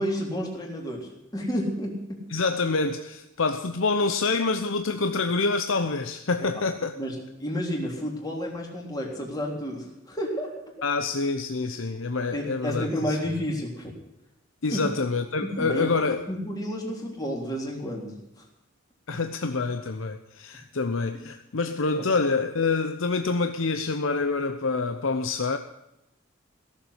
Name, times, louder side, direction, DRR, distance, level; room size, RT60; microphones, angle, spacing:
voice 1, 0.0-2.2 7.0-10.5 12.3-13.9 14.7-14.9 15.4-18.4 21.1-21.2 21.9-22.1, equal, 20° left, -1 dB, 3.6 m, -31 dB
voice 2, 2.3-6.9 10.8-13.2 14.6-16.2 19.1-25.6, left 3 dB, 75° left, 7 dB, 0.8 m, -26 dB
17.0 x 7.4 x 9.8 m, 0.87 s
head